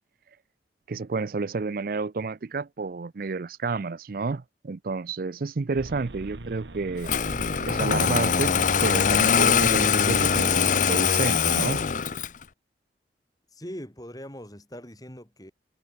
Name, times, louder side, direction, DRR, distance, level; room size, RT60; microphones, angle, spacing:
voice 1, 0.9-7.1 7.7-8.5 8.8-11.8, right 4 dB, 55° right, 0.5 m, -30 dB
sound 1, 5.8-10.9, right 2 dB, 85° right, 1.3 m, -40 dB
Engine starting, 7.0-12.4, left 7 dB, 45° left, 0.6 m, -22 dB
voice 2, 13.5-15.5, equal, 20° left, 7.9 m, -41 dB
head